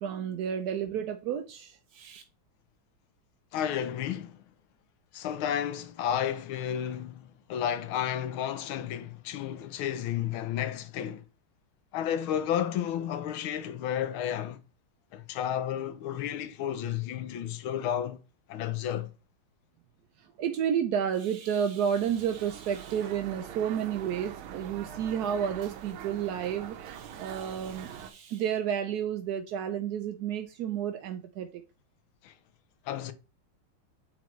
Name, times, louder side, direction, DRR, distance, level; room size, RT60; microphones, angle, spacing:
voice 1, 0.0-2.2 20.2-31.5, right 8 dB, 70° right, 0.9 m, -31 dB
voice 2, 3.5-4.4 5.1-11.2 11.9-14.6 15.1-18.2 18.5-19.1 32.2-32.3 32.8-33.1, left 10 dB, 80° left, 1.6 m, -32 dB
sound 1, 21.9-28.1, right 9 dB, 90° right, 1.7 m, -43 dB
9.2 x 4.2 x 3.1 m
omnidirectional pair, 2.2 m